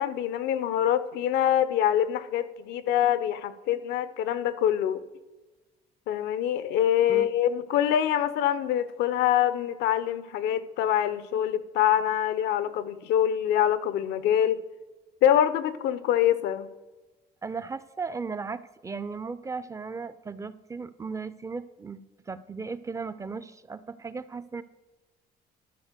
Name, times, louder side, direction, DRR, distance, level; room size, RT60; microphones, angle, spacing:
voice 1, 0.0-5.1 6.1-14.6 15.2-16.7, left 10 dB, 85° left, 14 dB, 0.6 m, -25 dB
voice 2, 17.4-22.0 22.3-24.6, right 4 dB, 20° right, 15 dB, 0.4 m, -36 dB
12.0 x 4.5 x 6.6 m, 1.2 s
cardioid pair, 110°, 17 cm